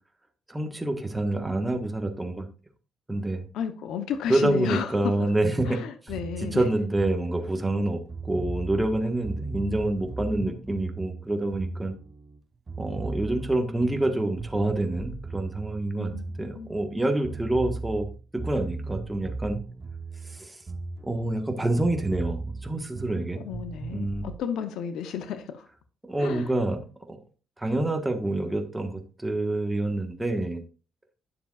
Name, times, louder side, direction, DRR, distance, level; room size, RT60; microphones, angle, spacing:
voice 1, 0.5-2.5 3.1-3.5 4.3-5.8 6.4-11.9 12.8-16.1 16.4-19.6 20.2-20.6 21.0-23.5 23.9-24.3 26.0-26.8 27.1-27.2 27.6-30.6, right 1 dB, 10° right, 4 dB, 1.4 m, -27 dB
voice 2, 3.5-5.1 5.7-6.6 16.1-16.2 16.5-16.7 23.4-25.7 26.2-26.5, left 8 dB, 85° left, 10 dB, 0.8 m, -33 dB
sound 1, 6.1-12.4 12.7-17.0 17.2-21.5 21.8-24.4, right 3 dB, 30° right, 1.0 m, -37 dB
9.8 x 6.9 x 2.4 m, 0.36 s
cardioid pair, 90°, 0 cm